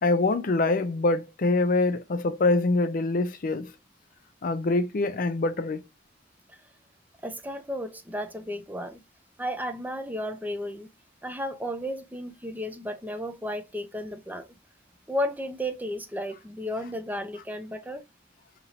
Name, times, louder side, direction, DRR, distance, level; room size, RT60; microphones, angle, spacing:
voice 1, 0.0-3.7 4.4-5.8, left 2 dB, 50° left, 0.5 m, -24 dB
voice 2, 7.2-9.0 9.4-10.9 11.2-14.5 15.1-18.0, equal, 10° right, 0.6 m, -33 dB
5.3 x 2.9 x 2.8 m
head